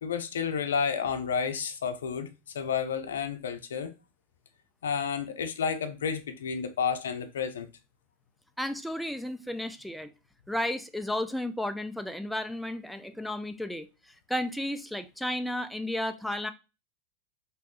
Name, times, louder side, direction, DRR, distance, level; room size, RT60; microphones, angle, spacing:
voice 1, 0.0-3.9 4.8-7.7, left 6 dB, 80° left, 0.5 m, -31 dB
voice 2, 8.6-10.1 10.5-13.9 14.3-16.5, left 1 dB, ahead, 0.4 m, -33 dB
3.1 x 3.0 x 3.0 m
hypercardioid pair, 100°, 0 cm